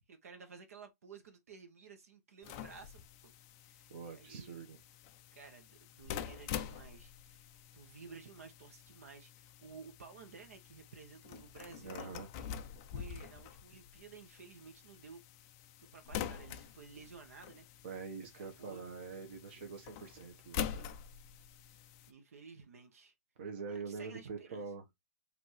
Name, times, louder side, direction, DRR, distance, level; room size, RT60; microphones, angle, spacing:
voice 1, 0.1-3.3 3.6-4.6 5.3-12.1 12.9-15.2 15.8-17.7 18.4-18.9 22.1-23.1 23.7-24.7, right 5 dB, 65° right, 1.2 m, -54 dB
sound 1, 2.4-22.1, left 9 dB, 20° left, 0.3 m, -46 dB
voice 2, 3.9-4.8 11.8-12.3 17.8-20.9 23.4-24.8, right 5 dB, 40° right, 1.1 m, -45 dB
5.1 x 2.8 x 3.1 m
hypercardioid pair, 170°, 9 cm